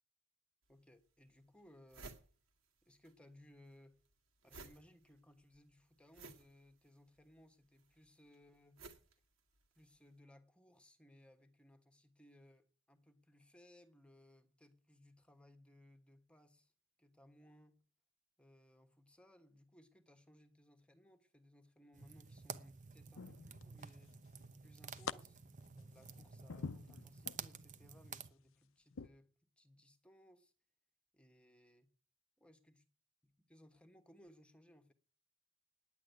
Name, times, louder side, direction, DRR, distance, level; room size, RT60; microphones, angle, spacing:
sound 1, 0.6-0.7 1.3-1.4 1.6-3.1 3.4-10.0, right 3 dB, 70° right, 2.0 m, -57 dB
voice 1, 0.7-2.2 2.8-4.0 4.4-8.9 9.7-16.7 17.0-17.9 18.4-24.2 24.6-25.4 25.7-29.3 29.6-30.5 31.1-31.9 32.4-32.8 33.4-34.9, left 1 dB, 5° left, 1.2 m, -64 dB
sound 2, 21.9-28.3, right 6 dB, 35° right, 0.8 m, -51 dB
sound 3, 22.0-22.5 23.2-24.1 24.4-25.1 25.6-27.4 27.9-28.2 28.9-29.1, left 5 dB, 65° left, 0.6 m, -47 dB
10.0 x 8.5 x 9.4 m
head